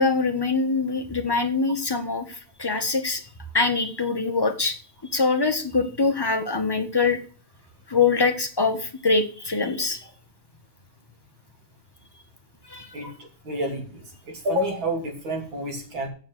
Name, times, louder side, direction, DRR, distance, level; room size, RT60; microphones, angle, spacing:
voice 1, 0.0-3.2 3.5-4.8 5.1-7.2 7.9-10.0 12.7-12.9, left 4 dB, 20° left, 6 dB, 0.7 m, -23 dB
voice 2, 12.9-16.1, equal, 65° right, 2 dB, 3.7 m, -29 dB
7.8 x 7.1 x 7.7 m, 0.38 s
omnidirectional pair, 2.4 m